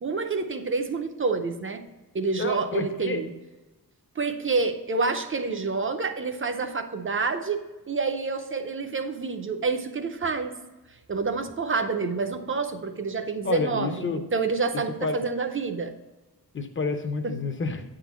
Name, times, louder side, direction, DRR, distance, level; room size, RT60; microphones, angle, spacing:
voice 1, 0.0-1.8 2.1-3.3 4.2-10.6 11.1-15.9 17.2-17.4, right 4 dB, 35° right, 6 dB, 0.6 m, -28 dB
voice 2, 2.4-3.2 13.4-14.2 15.0-15.2 16.5-17.8, left 3 dB, 35° left, 6 dB, 0.7 m, -29 dB
8.9 x 3.8 x 5.8 m, 1.1 s
wide cardioid pair, 165°, 36 cm